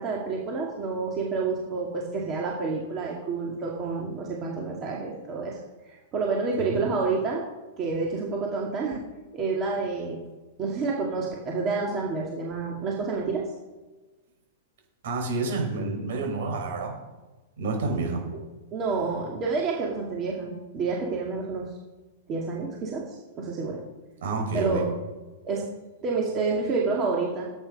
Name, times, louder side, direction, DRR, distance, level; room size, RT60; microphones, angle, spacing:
voice 1, 0.0-5.6 5.9-7.4 7.8-9.0 9.3-10.2 10.6-13.4 18.7-21.7 22.3-23.8 24.5-24.8 25.4-25.6 26.0-27.5, right 4 dB, 25° right, -2 dB, 2.2 m, -29 dB
voice 2, 15.0-16.9 17.6-18.2 24.2-24.9, right 3 dB, 65° right, 1 dB, 5.9 m, -29 dB
18.0 x 9.0 x 5.4 m, 1.2 s
supercardioid pair, 165°, 0 cm